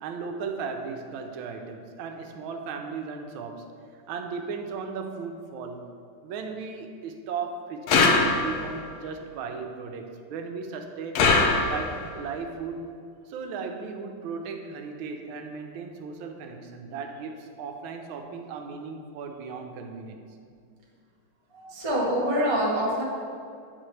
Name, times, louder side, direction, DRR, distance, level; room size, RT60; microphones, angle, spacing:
voice 1, 0.0-3.7 4.1-5.8 6.2-11.2 11.7-12.9 13.3-20.2, right 5 dB, 80° right, 4 dB, 1.4 m, -36 dB
sound 1, 7.9-8.8 11.1-12.1, left 4 dB, 75° left, 0.8 m, -22 dB
voice 2, 21.5-23.0, equal, 30° right, -5 dB, 0.5 m, -25 dB
7.6 x 4.3 x 3.2 m, 2.3 s
omnidirectional pair, 2.2 m